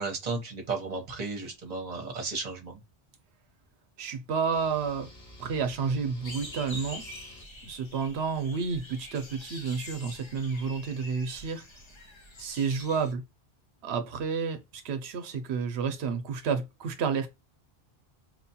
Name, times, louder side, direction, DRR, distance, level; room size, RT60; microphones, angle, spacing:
voice 1, 0.0-2.8, right 4 dB, 40° right, 1.0 m, -34 dB
voice 2, 4.0-5.1 5.4-7.0 7.7-11.6 12.4-13.2 13.8-17.3, right 5 dB, 90° right, 0.9 m, -30 dB
sound 1, 4.5-7.4, left 1 dB, 90° left, 2.3 m, -51 dB
sound 2, 6.2-13.1, left 1 dB, 35° left, 0.6 m, -45 dB
4.7 x 2.2 x 2.7 m
omnidirectional pair, 1.0 m